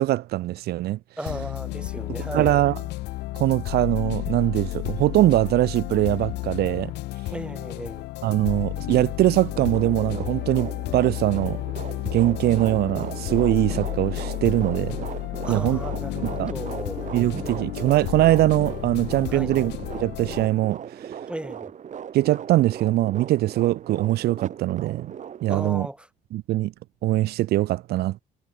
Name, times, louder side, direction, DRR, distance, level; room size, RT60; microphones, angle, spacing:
voice 1, 0.0-1.0 2.2-2.8 3.3-6.9 8.2-11.6 12.1-15.0 15.5-15.8 16.2-16.5 17.1-19.7 20.0-21.3 22.1-25.1 25.4-25.9 26.3-26.7 27.0-28.2, right 16 dB, 70° right, 0.8 m, -22 dB
voice 2, 1.2-2.6 7.3-8.1 15.4-17.1 19.3-19.6 21.3-21.7 25.5-26.1, right 1 dB, 5° right, 4.4 m, -35 dB
sound 1, 1.3-20.5, left 18 dB, 85° left, 4.5 m, -32 dB
sound 2, 9.5-25.7, right 8 dB, 45° right, 4.2 m, -38 dB
cardioid pair, 110°, 17 cm